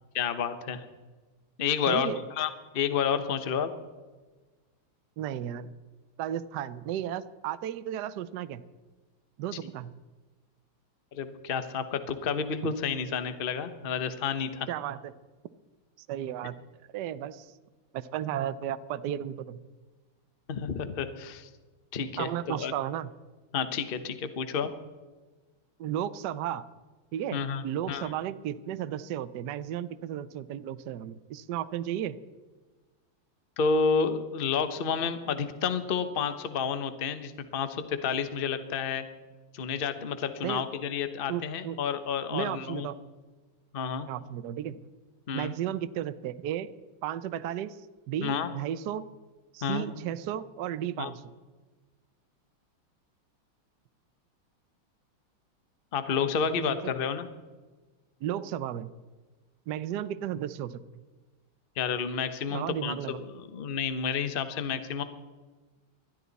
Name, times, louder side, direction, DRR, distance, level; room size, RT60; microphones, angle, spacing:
voice 1, 0.1-0.8 1.6-2.1 2.4-3.7 11.1-14.7 20.5-21.5 21.9-22.7 23.5-24.7 27.3-28.1 33.6-39.0 39.5-42.9 43.7-44.1 45.3-45.5 48.2-48.5 49.6-49.9 51.0-51.1 55.9-57.3 61.8-65.0, left 6 dB, 40° left, 10 dB, 0.8 m, -30 dB
voice 2, 1.9-2.2 5.2-5.7 6.2-8.6 9.4-9.9 12.6-12.7 14.7-15.1 16.0-16.6 16.9-17.5 17.9-19.6 22.2-23.1 25.8-26.7 27.1-32.2 40.4-40.6 41.3-41.8 42.3-43.0 44.1-44.8 45.3-46.7 47.0-47.8 48.1-49.1 49.5-51.2 56.7-56.8 58.2-58.9 59.7-60.8 62.5-63.2, right 11 dB, 65° right, 13 dB, 1.1 m, -34 dB
20.5 x 13.5 x 4.1 m, 1.3 s
omnidirectional pair, 2.3 m